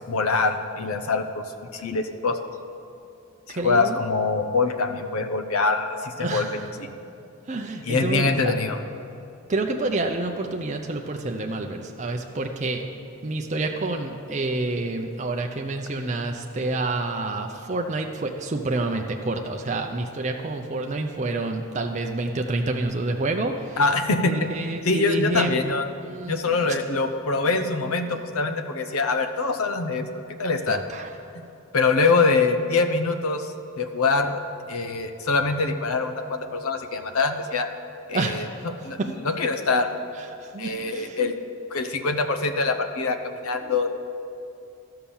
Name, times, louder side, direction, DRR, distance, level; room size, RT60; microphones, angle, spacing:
voice 1, 0.0-1.4 1.7-2.4 3.5-6.5 6.8-6.9 7.9-8.8 23.8-24.5 24.8-25.9 26.3-30.1 30.4-30.8 31.3-31.4 31.7-34.4 34.7-37.7 38.1-39.9 40.6-41.3 41.7-43.9, left 3 dB, 80° left, 8 dB, 0.7 m, -24 dB
voice 2, 3.5-4.0 6.2-6.7 7.5-8.6 9.5-12.8 13.2-23.8 24.2-25.6 26.0-26.4 28.1-28.2 30.7-31.1 38.1-38.6 39.0-39.1 40.4-41.2 43.6-43.7, right 2 dB, 30° right, 3 dB, 0.5 m, -28 dB
12.5 x 5.7 x 7.0 m, 2.7 s
head